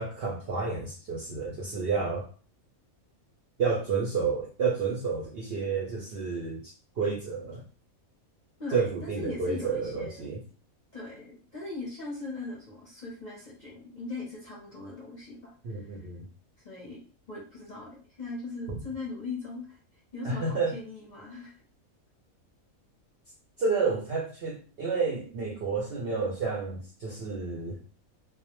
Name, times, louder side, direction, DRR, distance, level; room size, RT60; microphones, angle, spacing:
voice 1, 0.0-2.3 3.6-7.6 8.7-10.4 15.6-16.3 18.7-18.8 20.2-20.7 23.6-27.8, right 4 dB, 65° right, -3 dB, 0.6 m, -30 dB
voice 2, 8.6-10.3 10.9-16.0 16.6-19.8 20.1-21.5, left 3 dB, 45° left, -5 dB, 0.6 m, -40 dB
2.3 x 2.1 x 2.9 m, 0.40 s
omnidirectional pair, 1.5 m